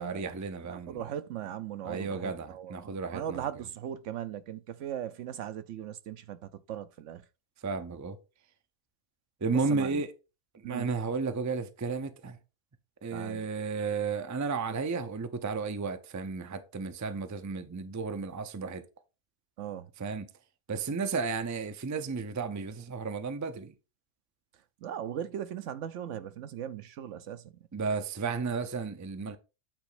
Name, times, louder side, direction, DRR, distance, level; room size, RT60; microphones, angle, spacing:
voice 1, 0.0-1.0 1.8-3.5 7.6-8.2 9.4-10.1 10.5-12.4 13.0-18.8 20.0-20.3 20.7-23.7 27.7-29.4, right 4 dB, 25° right, 0.4 m, -33 dB
voice 2, 0.6-7.2 9.5-10.0 10.6-10.9 13.1-13.5 19.6-19.9 24.8-27.5, right 10 dB, 75° right, 1.0 m, -39 dB
8.9 x 3.0 x 4.9 m
omnidirectional pair, 1.3 m